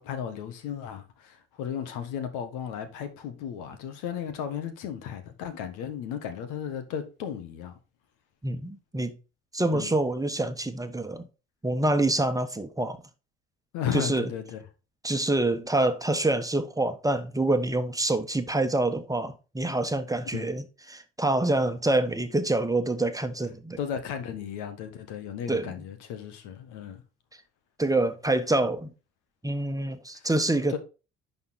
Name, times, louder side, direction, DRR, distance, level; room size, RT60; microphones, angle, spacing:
voice 1, 0.0-7.7 9.7-9.9 13.7-14.6 20.3-20.5 23.8-27.0 30.1-30.2 30.7-30.8, left 8 dB, 80° left, 1.5 m, -35 dB
voice 2, 8.4-9.2 9.5-11.2 11.6-13.0 13.9-14.3 15.0-23.8 25.5-25.7 27.8-28.9 29.4-30.8, right 2 dB, 10° right, 1.2 m, -26 dB
11.0 x 4.3 x 4.1 m
supercardioid pair, 65°, 30 cm